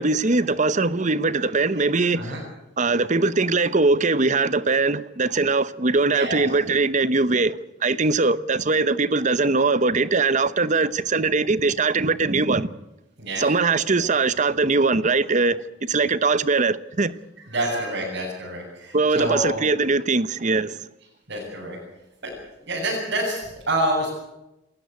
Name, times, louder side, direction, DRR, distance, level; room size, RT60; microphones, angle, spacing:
voice 1, 0.0-2.4 2.8-12.7 13.4-17.1 18.9-20.9, right 3 dB, 40° right, 0.9 m, -21 dB
voice 2, 6.1-6.5 13.2-13.7 14.0-14.1 17.5-19.6 21.3-21.8 22.2-22.3 22.7-24.1, right 1 dB, 60° right, 7.4 m, -27 dB
29.0 x 15.0 x 8.3 m
head